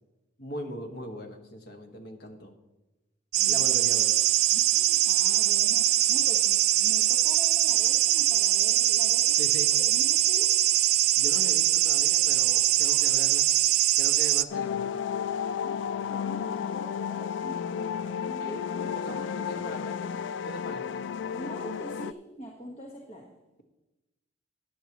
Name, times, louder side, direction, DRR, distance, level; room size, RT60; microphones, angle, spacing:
voice 1, 0.4-2.5 3.5-4.1 9.4-9.7 11.2-13.5 14.0-14.9 18.4-18.7 18.9-20.1 20.4-21.0, equal, 65° left, 4 dB, 1.5 m, -40 dB
voice 2, 3.3-3.7 4.5-9.4 9.7-10.6 15.5-19.8 21.3-23.3, equal, 35° left, 0 dB, 1.3 m, -44 dB
sound 1, 3.3-14.4, right 14 dB, 60° right, 0.4 m, -23 dB
sound 2, 14.5-22.1, left 7 dB, 90° left, 0.3 m, -32 dB
14.0 x 10.0 x 3.0 m, 1.0 s
head